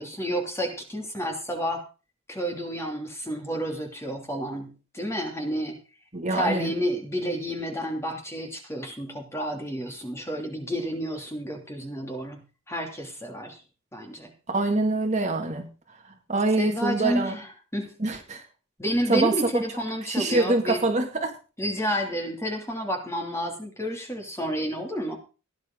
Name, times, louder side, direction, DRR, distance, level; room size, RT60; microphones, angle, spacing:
voice 1, 0.0-1.8 2.3-5.8 6.3-12.4 12.7-13.6 13.9-14.3 16.6-17.9 18.8-20.8 21.6-25.2, equal, 15° left, 3 dB, 3.0 m, -30 dB
voice 2, 6.1-6.7 14.5-15.7 16.3-17.4 18.0-18.4 19.1-19.6 20.0-21.4, right 2 dB, 35° right, 3 dB, 2.4 m, -25 dB
18.0 x 10.5 x 3.9 m, 0.33 s
head